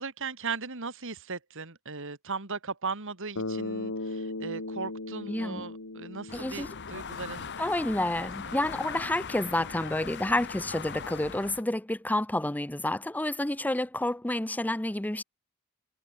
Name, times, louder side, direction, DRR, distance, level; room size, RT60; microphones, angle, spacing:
voice 1, 0.0-7.5 8.2-8.6, right 4 dB, 65° right, 2.7 m, -38 dB
Bass guitar, 3.4-7.6, left 2 dB, 75° left, 2.2 m, -37 dB
voice 2, 5.3-5.6 6.3-6.7 7.6-15.2, left 1 dB, 5° left, 0.7 m, -29 dB
sound 1, 6.3-11.6, left 6 dB, 55° left, 1.3 m, -40 dB
head